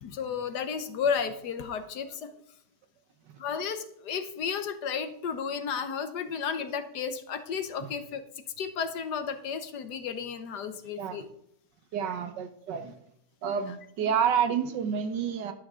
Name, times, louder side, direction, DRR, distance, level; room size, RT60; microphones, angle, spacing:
voice 1, 0.0-2.4 3.4-8.2 8.6-11.3, left 6 dB, 70° left, 10 dB, 1.5 m, -33 dB
voice 2, 11.9-13.0 13.4-15.5, right 7 dB, 85° right, 9 dB, 1.6 m, -29 dB
11.5 x 11.0 x 3.7 m, 0.72 s
omnidirectional pair, 1.9 m